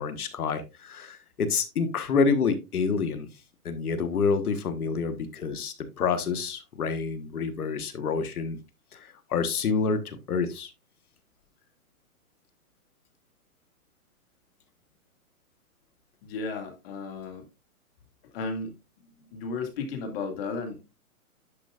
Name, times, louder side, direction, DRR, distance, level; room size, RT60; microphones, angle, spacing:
voice 1, 0.0-3.3 3.6-8.6 8.9-10.7, left 5 dB, 80° left, 1.3 m, -28 dB
voice 2, 16.2-17.5 18.3-18.7 19.0-20.8, left 4 dB, 40° left, 2.1 m, -34 dB
10.5 x 5.2 x 2.4 m
hypercardioid pair, 150°, 44 cm